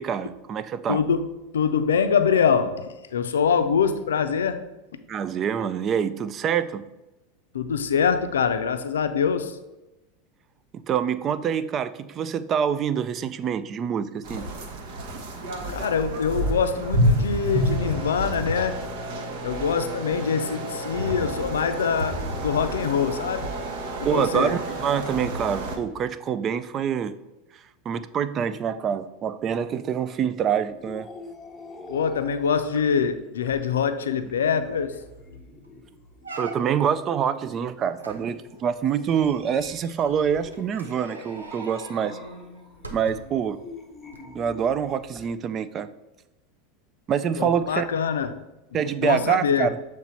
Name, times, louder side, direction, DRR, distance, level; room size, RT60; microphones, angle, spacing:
voice 1, 0.0-1.0 5.1-6.8 10.9-14.5 24.0-27.1 27.9-31.1 36.4-42.2 42.9-43.6 44.4-45.9 47.1-47.9 48.7-49.8, right 8 dB, 35° right, 13 dB, 0.4 m, -26 dB
voice 2, 0.9-4.6 7.5-9.6 15.7-18.8 19.4-23.5 24.0-24.6 31.9-35.0 47.4-48.4 48.7-49.7, left 6 dB, 75° left, 9 dB, 0.4 m, -24 dB
sound 1, 14.2-25.8, right 1 dB, 60° right, 0.9 m, -29 dB
sound 2, 30.7-45.3, left 1 dB, 10° left, 0.8 m, -46 dB
sound 3, 34.5-34.6 34.9-35.2 35.6-35.7 36.2-37.0 38.0-43.5 44.1-44.2, right 2 dB, 90° right, 0.7 m, -43 dB
6.8 x 3.2 x 4.4 m, 1.0 s
figure-of-eight pair, 85°, 0 cm